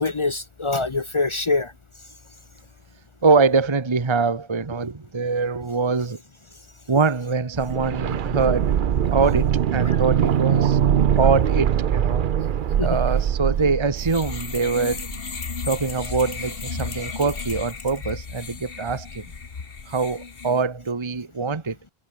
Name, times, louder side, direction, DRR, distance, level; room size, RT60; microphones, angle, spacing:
voice 1, 0.0-1.7 9.9-10.0 12.8-13.0, left 3 dB, 35° left, 0.6 m, -24 dB
voice 2, 3.2-6.2 6.9-8.7 9.1-10.8 11.1-12.2 12.8-15.0 15.7-19.2 19.9-21.8, right 4 dB, 25° right, 1.1 m, -23 dB
sound 1, 7.6-15.4 15.6-15.7, right 9 dB, 55° right, 0.8 m, -22 dB
sound 2, 14.0-20.6, left 5 dB, 60° left, 1.7 m, -34 dB
omnidirectional pair, 1.1 m